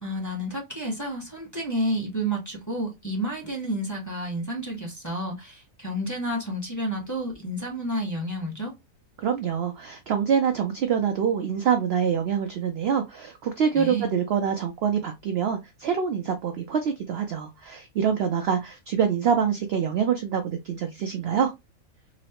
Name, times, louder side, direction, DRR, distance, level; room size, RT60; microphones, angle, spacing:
voice 1, 0.0-8.7 13.7-14.1, right 1 dB, 15° left, 1.0 m, -30 dB
voice 2, 9.2-21.5, right 7 dB, 70° right, 0.6 m, -25 dB
3.9 x 2.0 x 2.8 m
omnidirectional pair, 1.5 m